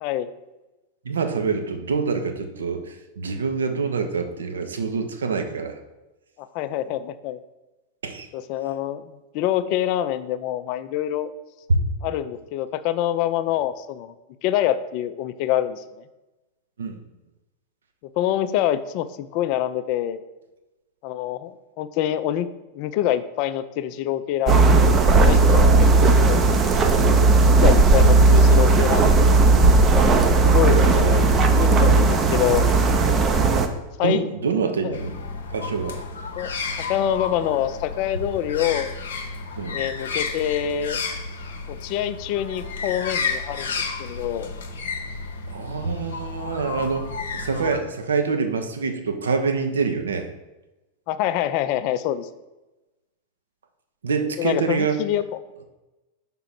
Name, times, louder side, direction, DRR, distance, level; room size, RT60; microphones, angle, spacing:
voice 1, 1.0-5.8 8.0-8.3 11.7-11.9 16.8-17.0 34.0-35.2 35.5-36.0 39.6-39.8 45.4-50.3 54.0-55.0, right 4 dB, 70° right, 6 dB, 0.7 m, -25 dB
voice 2, 6.4-7.4 8.3-11.3 12.0-14.1 14.4-15.8 18.2-20.2 21.0-22.5 22.7-24.6 25.2-26.5 27.4-29.4 30.4-32.7 34.0-34.3 34.8-35.0 36.4-36.5 36.9-38.9 39.7-41.0 41.7-44.5 51.1-52.3 54.4-55.2, left 11 dB, 45° left, 12 dB, 0.4 m, -26 dB
sound 1, 24.5-33.7, right 3 dB, 25° right, 0.6 m, -16 dB
sound 2, 34.9-47.8, left 4 dB, 65° left, 0.8 m, -32 dB
5.8 x 3.8 x 5.7 m, 1.0 s
figure-of-eight pair, 90°, 0 cm